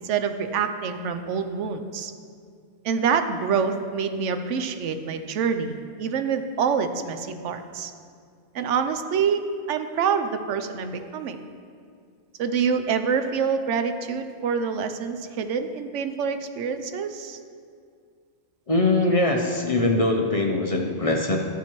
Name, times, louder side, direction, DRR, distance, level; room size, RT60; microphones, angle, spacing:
voice 1, 0.0-2.1 2.8-7.9 8.5-9.4 9.7-11.4 12.4-17.4, right 6 dB, 90° right, 8 dB, 1.0 m, -26 dB
voice 2, 18.7-21.4, left 2 dB, 40° left, 2 dB, 0.6 m, -22 dB
13.0 x 7.1 x 3.0 m, 2.2 s
omnidirectional pair, 1.2 m